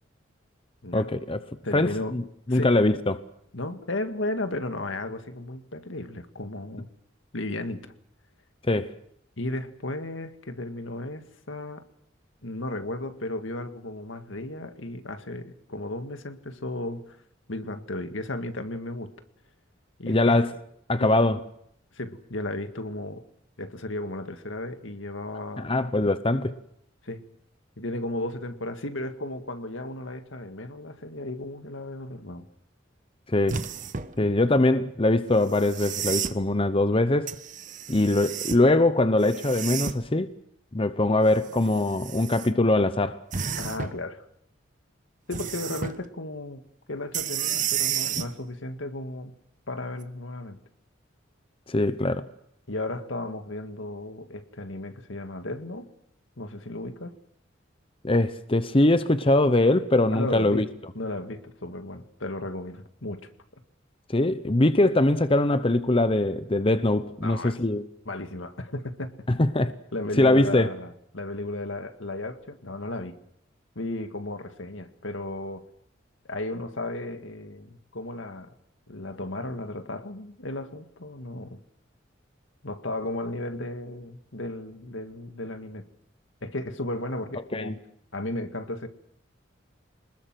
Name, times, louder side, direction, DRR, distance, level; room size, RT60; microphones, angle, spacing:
voice 1, 0.9-1.4 1.7-2.2 2.5-3.2 8.7-8.9 20.1-20.5 20.9-21.4 25.6-26.5 33.3-33.6 34.2-37.4 37.9-40.3 40.7-43.2 51.7-52.2 58.0-60.7 64.1-67.8 69.4-69.7 70.2-70.7 87.5-87.7, left 2 dB, 30° left, 0.9 m, -22 dB
voice 2, 1.6-2.2 2.5-2.7 3.5-6.9 7.3-7.9 9.4-11.8 12.4-17.2 17.5-19.1 20.0-20.4 21.0-21.3 21.9-23.2 23.6-25.7 27.0-27.2 27.8-32.5 34.2-34.3 43.6-44.2 45.3-46.6 46.9-49.3 49.7-50.6 52.7-55.9 56.4-57.2 60.1-60.7 60.9-63.3 67.2-67.6 68.1-69.1 69.9-73.2 73.8-75.7 76.3-78.5 78.9-81.6 82.6-85.8 86.4-87.7 88.1-88.9, left 2 dB, 75° left, 2.0 m, -34 dB
sound 1, 33.5-34.1 35.5-36.4 37.3-38.7 39.2-40.1 41.3-42.5 43.3-44.0 45.3-46.0 47.1-48.3 50.0-50.1, right 7 dB, 40° right, 1.2 m, -31 dB
25.5 x 20.5 x 7.8 m
head